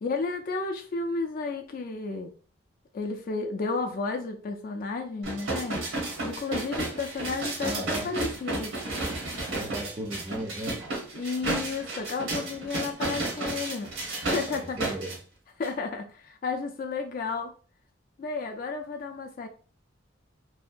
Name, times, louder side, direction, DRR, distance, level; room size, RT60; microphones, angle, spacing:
voice 1, 0.0-2.3 2.9-5.8 6.2-8.8 11.1-14.8 15.6-17.5 18.2-19.5, left 4 dB, 45° left, 5 dB, 0.3 m, -32 dB
sound 1, 5.2-15.2 15.6-15.7, right 2 dB, 80° right, 0.9 m, -32 dB
voice 2, 7.6-8.1 9.5-10.8 14.5-15.1, right 1 dB, 25° right, -1 dB, 0.4 m, -36 dB
2.7 x 2.2 x 2.4 m, 0.40 s
head